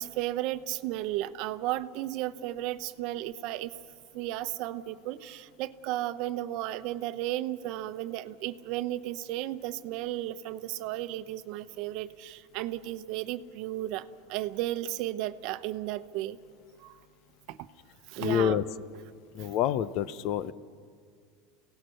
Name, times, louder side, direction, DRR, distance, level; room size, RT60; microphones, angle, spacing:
voice 1, 0.0-3.7 4.1-16.4 16.8-17.0 17.5-17.7 18.1-18.6, right 14 dB, 55° right, 12 dB, 0.9 m, -34 dB
voice 2, 18.2-18.6 19.3-20.5, left 10 dB, 55° left, 16 dB, 0.7 m, -27 dB
28.5 x 18.0 x 6.5 m, 2.1 s
supercardioid pair, 135°, 0 cm